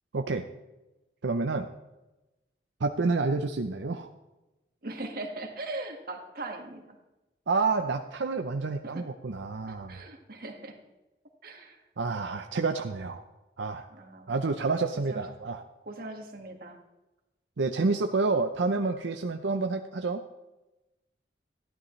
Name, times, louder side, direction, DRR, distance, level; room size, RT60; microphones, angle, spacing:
voice 1, 0.1-0.5 1.2-1.7 2.8-4.1 7.5-10.0 12.0-13.2 13.6-13.9 14.3-15.6 17.6-20.2, right 3 dB, 85° right, 6 dB, 0.6 m, -29 dB
voice 2, 4.8-6.8 8.8-9.1 9.7-10.8 11.4-11.8 13.9-14.4 15.1-15.2 15.8-16.8, right 2 dB, 55° right, 3 dB, 1.7 m, -40 dB
14.5 x 11.5 x 3.2 m, 1.0 s
head